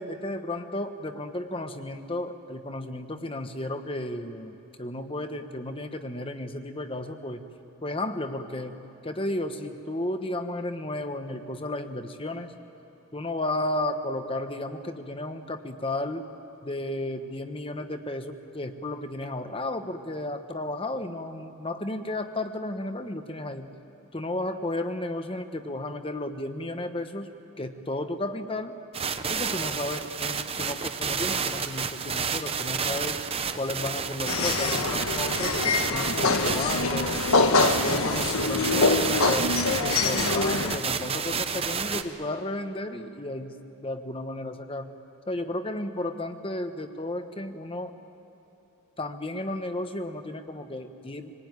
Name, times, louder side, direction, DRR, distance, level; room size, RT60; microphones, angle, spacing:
voice 1, 0.0-7.4 7.8-8.8 9.0-12.5 13.1-16.2 16.6-23.7 24.1-27.3 27.6-28.7 29.3-33.2 33.6-37.1 37.6-39.6 39.8-44.9 45.3-47.9 49.0-51.3, left 1 dB, 25° left, 8 dB, 1.1 m, -33 dB
sound 1, 28.9-42.0, right 6 dB, 25° right, 0.8 m, -30 dB
sound 2, 34.3-40.8, left 3 dB, 75° left, 1.3 m, -25 dB
26.0 x 19.5 x 9.6 m, 2.7 s
head